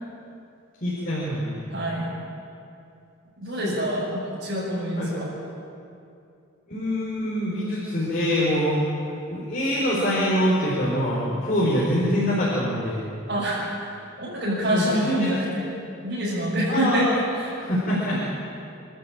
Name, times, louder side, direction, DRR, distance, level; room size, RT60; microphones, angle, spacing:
voice 1, 0.8-1.6 3.6-3.7 5.0-5.1 6.7-8.8 9.3-13.1 14.7-15.3 16.7-17.0 17.6-18.2, equal, 45° left, -6 dB, 4.6 m, -24 dB
voice 2, 1.7-2.1 3.4-5.3 13.3-15.6 16.0-17.1 17.4-17.6 17.9-18.2, equal, 55° right, -12 dB, 7.0 m, -26 dB
27.0 x 13.0 x 8.8 m, 2.6 s
head